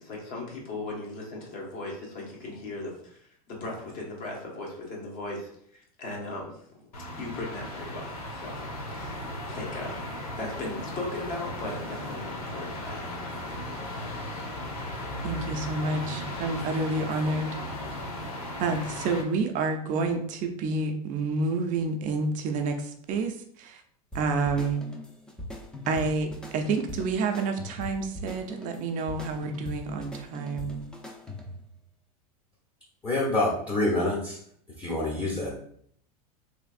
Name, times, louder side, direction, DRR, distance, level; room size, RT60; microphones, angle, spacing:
voice 1, 0.0-3.2 3.5-6.8 7.2-8.6 8.9-10.0 10.4-13.6, left 2 dB, 50° left, 1.4 m, -38 dB
sound 1, 6.9-19.2, left 1 dB, 85° left, 1.1 m, -36 dB
voice 2, 15.2-17.6 18.6-23.8 24.1-24.8 25.9-30.8, right 3 dB, 45° right, 0.5 m, -29 dB
sound 2, 24.1-31.7, left 1 dB, 5° left, 0.6 m, -41 dB
voice 3, 33.0-34.4 34.8-35.6, left 2 dB, 20° left, 0.9 m, -27 dB
3.3 x 3.2 x 2.5 m
hypercardioid pair, 110°, 19 cm